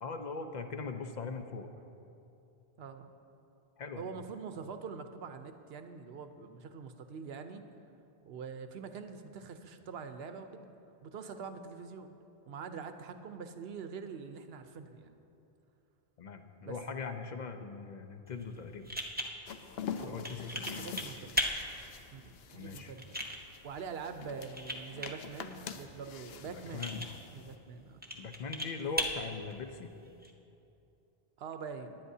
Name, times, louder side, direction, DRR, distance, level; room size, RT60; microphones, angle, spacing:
voice 1, 0.0-1.7 3.8-4.1 16.2-19.0 20.0-21.0 22.5-22.9 26.5-27.2 28.1-29.9, left 4 dB, 50° left, 7 dB, 0.7 m, -41 dB
voice 2, 2.8-3.1 4.0-7.6 8.3-10.6 11.0-12.2 12.5-15.1 16.6-16.8 20.0-20.2 20.5-21.4 22.1-23.1 23.6-27.1 27.3-28.0 31.4-32.0, right 5 dB, 80° right, 8 dB, 0.9 m, -44 dB
sound 1, 18.3-30.3, equal, 10° right, 0.7 m, -40 dB
sound 2, 19.5-27.6, left 7 dB, 80° left, 0.8 m, -46 dB
18.5 x 10.5 x 2.7 m, 2.8 s
omnidirectional pair, 1.0 m